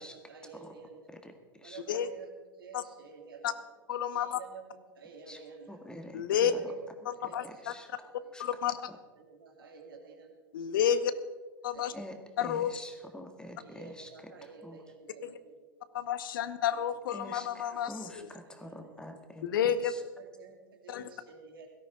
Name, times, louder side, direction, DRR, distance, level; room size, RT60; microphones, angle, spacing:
voice 1, 0.0-1.1 1.6-3.6 4.1-5.8 6.3-6.8 7.1-7.6 8.0-8.3 9.1-10.4 10.9-11.2 11.7-12.1 12.5-12.9 13.6-15.6 16.4-16.8 18.5-19.3 20.2-21.7, right 5 dB, 75° right, 2 dB, 2.8 m, -51 dB
voice 2, 3.9-4.4 6.1-6.5 7.1-7.7 8.4-8.8 10.5-11.1 11.6-11.9 12.4-12.7 15.2-15.3 15.9-18.3 19.4-19.9 20.9-21.1, left 9 dB, 70° left, 14 dB, 0.8 m, -30 dB
voice 3, 5.7-6.6 7.4-8.4 8.9-9.0 11.9-14.1 14.6-14.8 17.1-19.5 19.8-20.0, left 1 dB, 5° left, 6 dB, 1.8 m, -46 dB
17.0 x 13.0 x 3.8 m, 1.3 s
hypercardioid pair, 95°, 12 cm